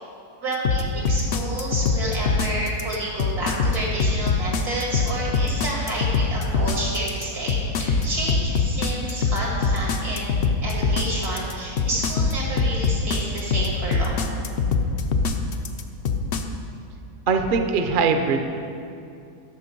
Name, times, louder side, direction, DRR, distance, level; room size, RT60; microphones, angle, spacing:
voice 1, 0.4-14.3, right 1 dB, 90° right, -3 dB, 2.8 m, -30 dB
sound 1, 0.6-16.4, left 5 dB, 60° left, 0.6 m, -22 dB
voice 2, 17.3-18.4, right 5 dB, 50° right, 5 dB, 0.6 m, -21 dB
11.0 x 6.6 x 5.3 m, 2.5 s
omnidirectional pair, 1.6 m